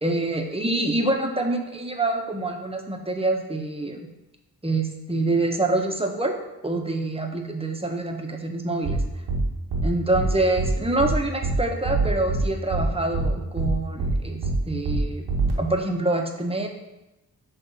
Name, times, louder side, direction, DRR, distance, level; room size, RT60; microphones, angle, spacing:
voice 1, 0.0-4.1 4.6-6.3 6.6-9.0 9.8-15.2 15.6-16.7, right 2 dB, 15° right, 3 dB, 1.2 m, -26 dB
sound 1, 8.8-9.0 9.3-9.4 9.7-9.8 10.1-10.3 10.6-10.7 11.0-11.1 11.4-11.6 11.8-12.4 12.7-12.8 13.1-13.3 13.6-13.7 14.0-14.1 14.4-14.6 14.8-15.0 15.3-15.5, right 3 dB, 85° right, 1.5 m, -25 dB
6.2 x 3.5 x 5.5 m, 0.97 s
cardioid pair, 50°, 38 cm